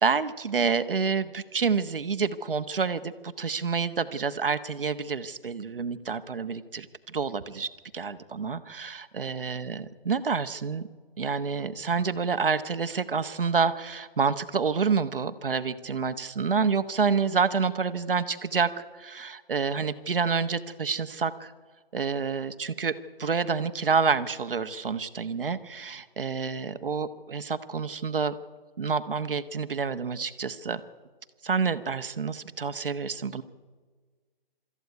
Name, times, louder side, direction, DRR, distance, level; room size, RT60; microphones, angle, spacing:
voice 1, 0.0-10.8 11.2-21.5 21.9-28.3 28.8-30.8 31.4-33.4, right 5 dB, 65° right, 10 dB, 1.2 m, -28 dB
24.0 x 13.5 x 9.6 m, 1.4 s
hypercardioid pair, 175°, 29 cm